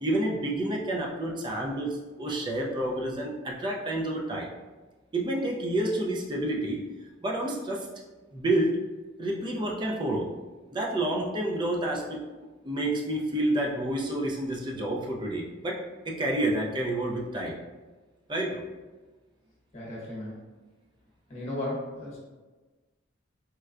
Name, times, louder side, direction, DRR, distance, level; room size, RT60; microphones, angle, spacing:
voice 1, 0.0-4.5 5.1-6.8 7.2-7.9 8.3-8.8 9.2-10.3 10.7-12.2 12.6-15.8 16.0-17.6 18.3-18.6, right 1 dB, 25° right, -1 dB, 0.4 m, -29 dB
voice 2, 19.7-20.4 21.3-22.2, left 1 dB, 35° left, -6 dB, 1.1 m, -35 dB
4.3 x 2.1 x 2.4 m, 1.3 s
head